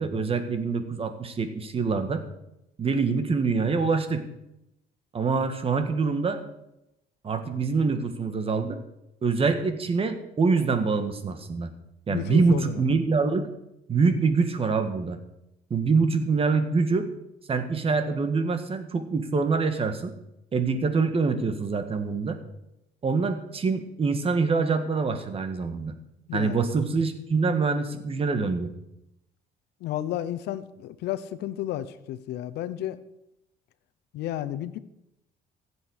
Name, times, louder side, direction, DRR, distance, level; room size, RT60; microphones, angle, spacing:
voice 1, 0.0-2.2 2.8-4.2 5.1-6.4 7.2-8.8 9.2-11.7 12.1-13.5 13.9-15.2 15.7-17.1 17.5-20.1 20.5-22.4 23.0-25.9 26.3-28.7, right 4 dB, 35° right, 9 dB, 1.7 m, -25 dB
voice 2, 12.1-12.7 26.3-26.6 29.8-33.0 34.1-34.8, left 12 dB, 80° left, 13 dB, 0.9 m, -32 dB
15.5 x 8.0 x 6.4 m, 0.85 s
cardioid pair, 110°, 17 cm